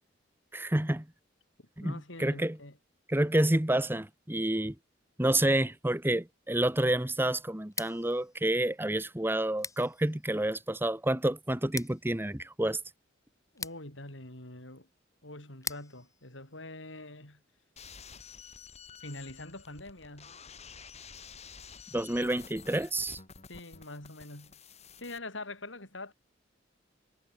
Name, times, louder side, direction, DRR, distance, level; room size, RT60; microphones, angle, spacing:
voice 1, 0.5-1.1 1.8-2.6 3.1-4.7 5.2-12.8 21.9-23.2, right 1 dB, 10° right, 1.2 m, -29 dB
voice 2, 1.6-2.8 13.5-14.9 15.2-17.4 19.0-20.4 23.5-24.6 25.0-26.1, left 2 dB, 80° left, 7.1 m, -44 dB
Scissors, 7.6-17.4, left 5 dB, 15° left, 3.8 m, -46 dB
sound 1, 17.8-25.2, left 6 dB, 35° left, 2.9 m, -50 dB
head